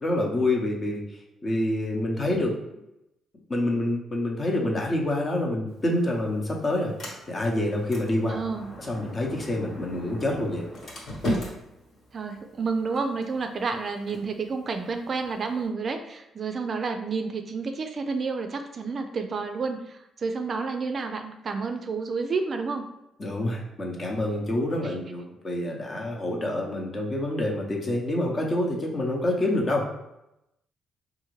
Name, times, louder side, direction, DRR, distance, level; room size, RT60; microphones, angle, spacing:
voice 1, 0.0-1.0 1.4-2.6 3.5-8.4 8.8-10.7 23.2-29.9, left 1 dB, 35° left, 0 dB, 0.8 m, -27 dB
Sliding door, 5.7-15.7, equal, 55° left, 1.3 m, -38 dB
voice 2, 8.3-8.7 12.1-22.8 24.8-25.0, right 4 dB, 45° right, 6 dB, 0.4 m, -30 dB
3.5 x 2.5 x 3.1 m, 0.87 s
cardioid pair, 90°, 0 cm